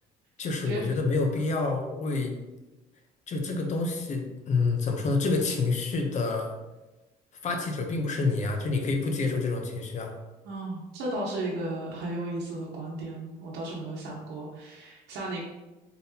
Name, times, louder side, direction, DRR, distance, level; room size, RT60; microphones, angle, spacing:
voice 1, 0.4-2.3 3.3-6.5 7.4-10.1, left 3 dB, 45° left, 4 dB, 0.7 m, -28 dB
voice 2, 10.4-15.4, right 1 dB, 90° right, -5 dB, 0.9 m, -34 dB
3.9 x 3.6 x 2.8 m, 1.1 s
cardioid pair, 110°, 17 cm